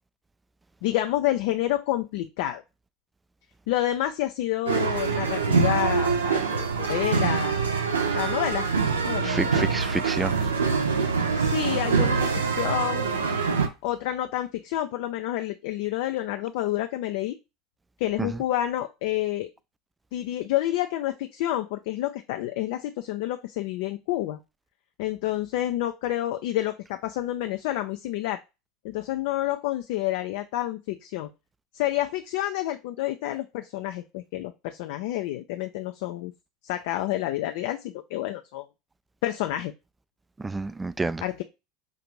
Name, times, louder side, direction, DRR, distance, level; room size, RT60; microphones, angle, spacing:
voice 1, 0.8-2.6 3.7-7.6 8.1-8.6 9.0-9.7 11.3-13.1 13.8-17.4 18.0-19.5 20.1-24.4 25.0-28.4 28.8-31.3 31.7-36.3 36.6-38.6 39.2-39.7 41.2-41.4, left 14 dB, 65° left, 0.3 m, -29 dB
sound 1, 4.7-13.7, right 5 dB, 85° right, 0.6 m, -24 dB
voice 2, 9.2-10.4 18.2-18.3 40.4-41.2, right 3 dB, 15° right, 0.3 m, -29 dB
5.1 x 2.5 x 3.0 m
hypercardioid pair, 75°, 0 cm